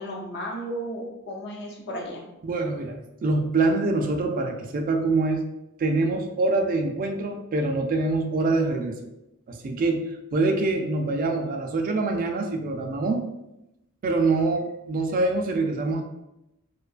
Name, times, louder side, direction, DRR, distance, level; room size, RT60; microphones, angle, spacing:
voice 1, 0.0-2.3, equal, 55° left, 0 dB, 0.6 m, -34 dB
voice 2, 2.4-5.4 5.8-9.0 9.5-13.2 14.0-16.0, right 3 dB, 40° right, 3 dB, 0.3 m, -25 dB
2.6 x 2.2 x 2.4 m, 0.88 s
head